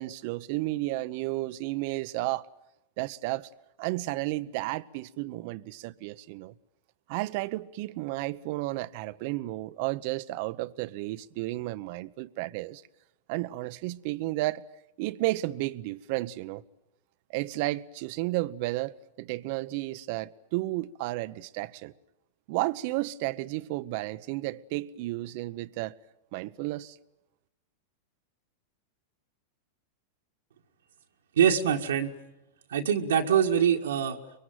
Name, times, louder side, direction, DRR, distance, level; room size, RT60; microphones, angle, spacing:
voice 1, 0.0-2.5 3.0-3.5 3.8-6.5 7.1-12.8 13.3-14.6 15.0-16.6 17.3-21.9 22.5-26.0 26.3-27.0, right 18 dB, 55° right, 0.9 m, -32 dB
voice 2, 31.4-32.1 32.7-34.2, right 8 dB, 85° right, 2.0 m, -24 dB
24.5 x 22.5 x 9.3 m
hypercardioid pair, 110°, 0 cm